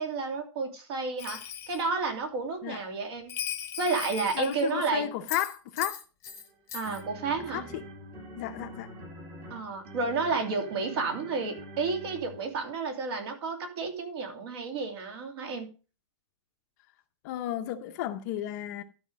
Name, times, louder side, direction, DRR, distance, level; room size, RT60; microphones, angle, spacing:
voice 1, 0.0-3.3 3.8-5.1 6.7-7.6 9.5-15.7, right 4 dB, 50° right, 2.8 m, -31 dB
Bell, 1.2-1.9 3.3-4.8 5.3-6.4 6.7-7.0, left 9 dB, 15° left, 1.1 m, -38 dB
voice 2, 4.3-6.0 7.5-7.6 8.4-8.9 17.2-18.8, left 12 dB, 35° left, 0.7 m, -33 dB
sound 1, 6.3-12.7, equal, 25° right, 1.8 m, -46 dB
12.5 x 5.0 x 5.1 m
supercardioid pair, 170°, 16 cm